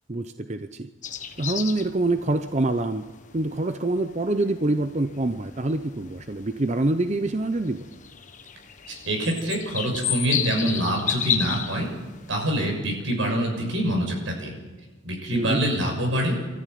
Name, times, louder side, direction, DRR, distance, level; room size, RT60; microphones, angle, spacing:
voice 1, 0.1-0.9 1.4-3.1 3.3-7.9 15.3-15.6, right 2 dB, 35° right, 9 dB, 0.7 m, -25 dB
sound 1, 1.0-12.7, left 9 dB, 40° left, 1.2 m, -34 dB
voice 2, 9.1-11.9 12.3-14.6 15.0-16.4, right 1 dB, 85° right, 1 dB, 6.6 m, -25 dB
24.0 x 13.5 x 9.4 m, 1.2 s
head